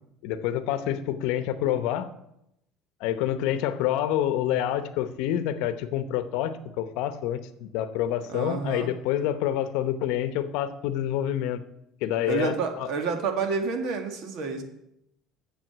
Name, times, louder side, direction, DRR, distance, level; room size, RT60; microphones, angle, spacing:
voice 1, 0.2-2.1 3.0-11.6 12.0-12.9, left 11 dB, 75° left, 11 dB, 0.8 m, -27 dB
voice 2, 8.3-8.9 12.3-14.6, right 4 dB, 60° right, 5 dB, 1.7 m, -29 dB
7.6 x 7.0 x 7.9 m, 0.81 s
cardioid pair, 145°, 0 cm